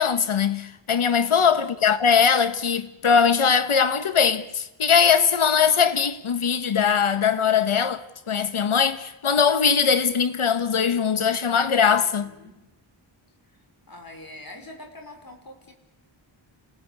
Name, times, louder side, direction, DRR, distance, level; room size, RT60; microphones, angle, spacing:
voice 1, 0.0-12.3, left 6 dB, 75° left, 1.6 m, -21 dB
voice 2, 1.1-1.8 11.9-12.6 13.4-13.6 13.9-15.7, left 1 dB, 45° left, 5.2 m, -45 dB
29.0 x 17.5 x 8.3 m
wide cardioid pair, 65°, 50 cm